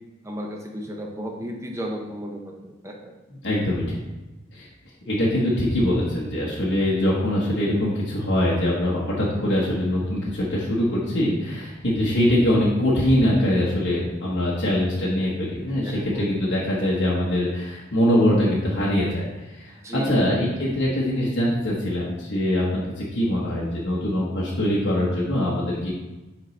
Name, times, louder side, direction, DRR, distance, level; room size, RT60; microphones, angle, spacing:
voice 1, 0.2-3.2 15.7-16.3 19.8-20.2, equal, 15° right, 1 dB, 0.5 m, -34 dB
voice 2, 3.4-4.0 4.5-4.7 5.1-19.7 20.1-25.9, left 1 dB, 55° left, -6 dB, 1.2 m, -23 dB
7.5 x 3.9 x 3.2 m, 1.1 s
head